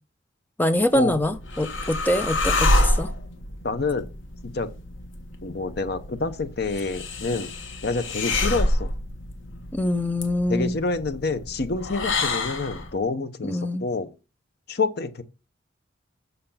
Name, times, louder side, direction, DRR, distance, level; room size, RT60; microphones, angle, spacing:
voice 1, 0.6-3.1 9.7-10.8 13.4-13.9, left 1 dB, 10° left, 0.6 m, -24 dB
sound 1, 0.9-12.9, left 2 dB, 80° left, 1.3 m, -28 dB
voice 2, 3.6-4.1 4.4-4.7 5.4-7.5 7.8-8.9 10.5-14.1 14.7-15.2, left 3 dB, 55° left, 0.8 m, -27 dB
6.8 x 6.6 x 5.6 m
head